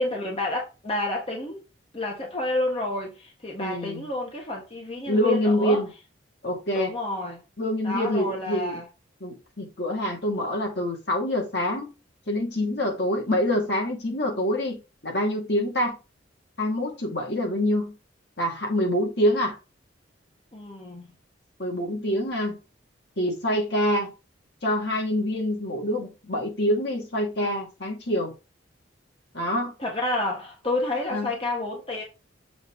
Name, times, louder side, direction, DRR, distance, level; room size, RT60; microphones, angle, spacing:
voice 1, 0.0-1.6 1.9-5.8 6.7-7.4 7.8-8.9 20.5-21.0 29.8-32.0, left 2 dB, 30° left, 1.5 m, -29 dB
voice 2, 3.6-4.0 5.1-5.9 6.4-6.9 7.6-8.8 9.2-11.9 12.3-16.0 16.6-17.9 18.4-19.6 21.6-22.6 23.2-24.1 24.6-28.3 29.3-29.7 31.1-31.3, left 1 dB, 60° left, 2.3 m, -26 dB
7.3 x 4.8 x 3.9 m
head